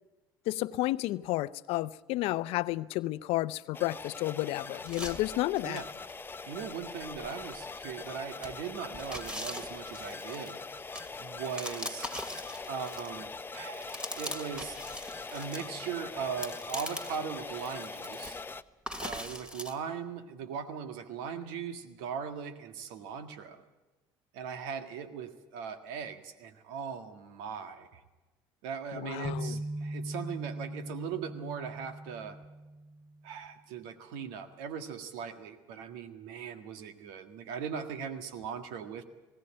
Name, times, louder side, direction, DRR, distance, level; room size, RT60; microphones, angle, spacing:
voice 1, 0.5-5.8 28.9-29.6, left 17 dB, 70° left, 0.6 m, -31 dB
sound 1, 3.7-18.6, left 4 dB, 20° left, 0.8 m, -42 dB
sound 2, 4.9-6.1 6.6-6.7 7.1-8.1 8.4-13.3 13.5-15.6 16.1-17.2 17.5-18.4 18.9-19.7, equal, 10° right, 2.5 m, -41 dB
voice 2, 6.5-12.1 12.7-14.8 15.3-18.4 19.0-23.6 24.3-28.0 28.6-32.4 33.2-39.0, right 7 dB, 80° right, 1.7 m, -39 dB
sound 3, 29.2-33.3, right 1 dB, 40° right, 2.5 m, -40 dB
20.0 x 17.0 x 8.8 m
hypercardioid pair, 70°, 10 cm